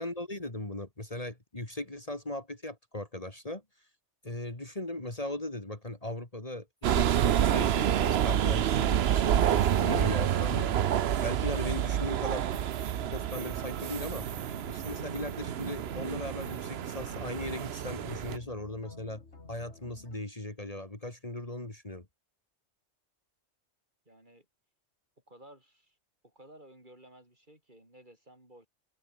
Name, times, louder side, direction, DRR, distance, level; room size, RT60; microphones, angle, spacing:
voice 1, 0.0-3.6 4.2-10.7 11.2-12.5 13.1-14.3 14.6-19.2 19.5-22.1, left 1 dB, 30° left, 2.9 m, -38 dB
sound 1, 6.8-18.4, right 10 dB, 65° right, 0.9 m, -28 dB
sound 2, 10.2-20.2, left 3 dB, 70° left, 3.1 m, -50 dB
voice 2, 24.1-24.5 25.3-26.0 26.2-28.7, right 1 dB, 45° right, 7.8 m, -55 dB
omnidirectional pair, 1.2 m